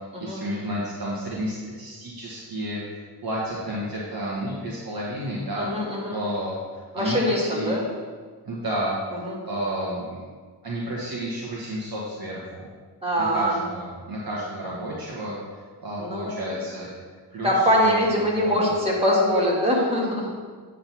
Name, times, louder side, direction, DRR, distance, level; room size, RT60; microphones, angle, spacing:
voice 1, 0.2-5.7 6.1-7.8 8.4-9.0 9.4-10.2 10.6-12.7 13.2-15.4 15.8-16.9 17.3-18.6, right 1 dB, 55° right, -6 dB, 1.7 m, -31 dB
voice 2, 5.6-6.2 6.9-7.8 9.2-9.3 13.0-13.5 16.0-16.4 17.4-20.3, equal, 15° right, -5 dB, 2.5 m, -23 dB
8.7 x 4.0 x 6.1 m, 1.5 s
cardioid pair, 85°, 43 cm